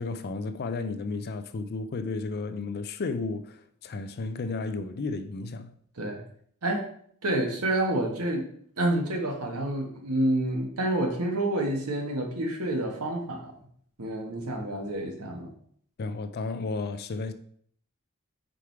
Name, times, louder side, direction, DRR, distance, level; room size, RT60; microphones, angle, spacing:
voice 1, 0.0-5.8 16.0-17.3, left 3 dB, 45° left, 0.4 m, -33 dB
voice 2, 7.2-8.5 8.8-13.6 14.0-15.5, right 1 dB, 80° right, 1.4 m, -28 dB
5.0 x 4.9 x 4.5 m
head